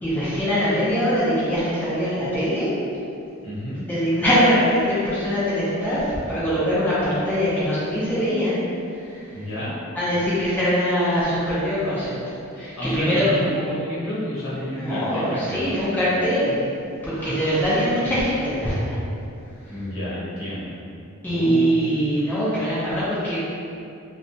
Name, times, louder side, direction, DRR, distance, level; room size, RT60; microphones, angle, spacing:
voice 1, 0.0-2.7 3.9-8.6 8.9-9.3 9.9-12.1 12.5-13.3 14.7-16.6 17.0-19.0 19.6-19.7 21.2-23.4, equal, 10° left, -11 dB, 0.4 m, -22 dB
voice 2, 3.4-3.8 9.3-9.7 12.8-15.7 17.2-18.1 19.7-20.8 21.2-21.9, equal, 70° left, -8 dB, 0.9 m, -30 dB
2.7 x 2.1 x 2.6 m, 2.6 s
head